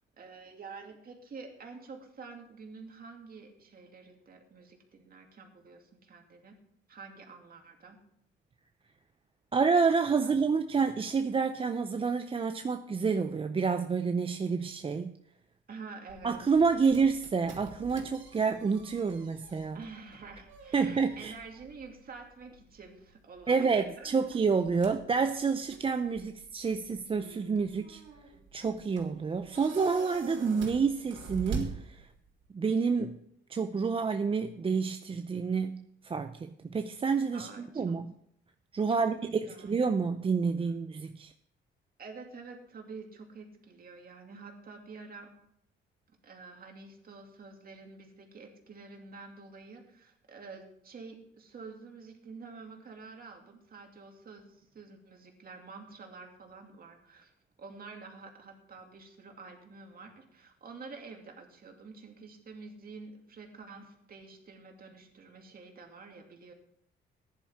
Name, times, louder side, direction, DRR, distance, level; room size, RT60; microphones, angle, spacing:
voice 1, 0.2-6.5 6.9-8.0 10.2-10.3 15.7-16.4 19.7-24.2 37.3-37.9 38.9-39.1 39.4-39.8 42.0-45.3 46.2-57.3 57.6-66.5, right 4 dB, 50° right, 2.4 m, -48 dB
voice 2, 9.5-15.2 16.2-19.8 20.7-21.3 23.5-28.0 28.5-32.1 32.5-33.2 33.5-38.1 38.7-41.3, right 5 dB, 25° right, 0.5 m, -29 dB
sound 1, 16.1-32.5, right 4 dB, 70° right, 3.0 m, -46 dB
14.5 x 10.5 x 3.6 m
cardioid pair, 90°, 20 cm